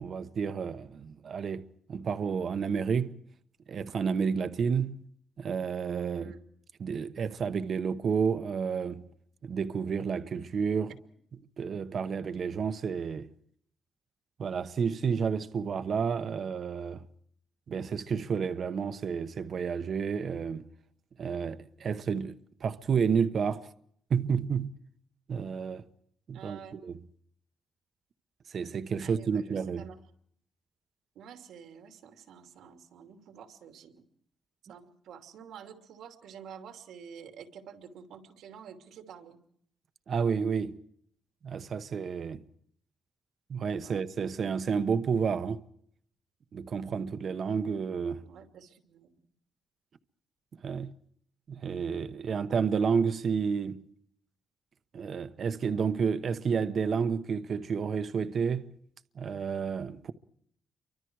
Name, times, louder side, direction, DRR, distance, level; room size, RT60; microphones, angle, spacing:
voice 1, 0.0-1.6 1.9-3.1 3.7-5.1 5.4-6.3 6.8-9.1 9.4-10.9 11.6-13.3 14.4-17.0 17.7-20.6 21.2-22.4 22.6-23.7 24.1-24.7 25.3-25.8 26.3-27.0 28.5-29.9 40.1-40.8 41.4-42.4 43.5-45.6 46.5-48.2 50.6-50.9 51.5-53.8 54.9-58.7 59.2-60.1, right 6 dB, 40° right, 1.0 m, -30 dB
voice 2, 26.3-26.8 29.0-30.0 31.1-34.0 34.7-39.4 43.8-44.0 48.2-49.2, right 7 dB, 85° right, 2.8 m, -49 dB
30.0 x 24.5 x 4.7 m
cardioid pair, 180°, 0 cm